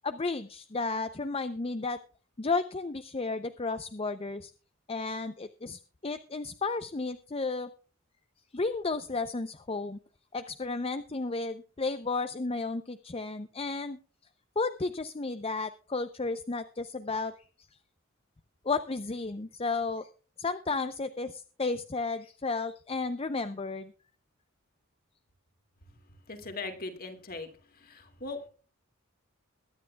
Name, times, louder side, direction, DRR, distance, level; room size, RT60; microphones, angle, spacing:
voice 1, 0.0-2.0 2.4-4.5 4.9-7.7 8.5-10.0 10.3-14.0 14.6-17.3 18.6-20.1 20.4-23.9, left 3 dB, 30° left, 11 dB, 0.6 m, -33 dB
voice 2, 26.3-27.5 27.8-28.4, left 3 dB, 45° left, 6 dB, 2.4 m, -39 dB
22.0 x 10.0 x 2.3 m, 0.40 s
head